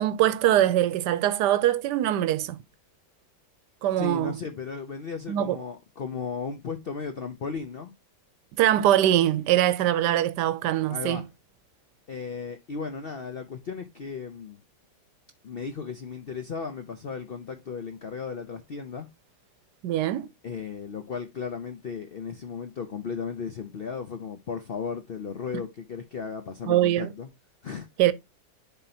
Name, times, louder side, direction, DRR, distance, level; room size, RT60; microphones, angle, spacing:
voice 1, 0.0-2.6 3.8-4.4 5.3-5.6 8.6-11.2 19.8-20.3 26.7-27.1 28.0-28.1, right 13 dB, 80° right, 1.2 m, -23 dB
voice 2, 4.0-7.9 10.9-11.3 12.1-14.6 15.4-19.1 20.4-27.3 27.6-27.9, left 5 dB, 75° left, 0.5 m, -35 dB
10.5 x 3.6 x 2.7 m
omnidirectional pair, 1.9 m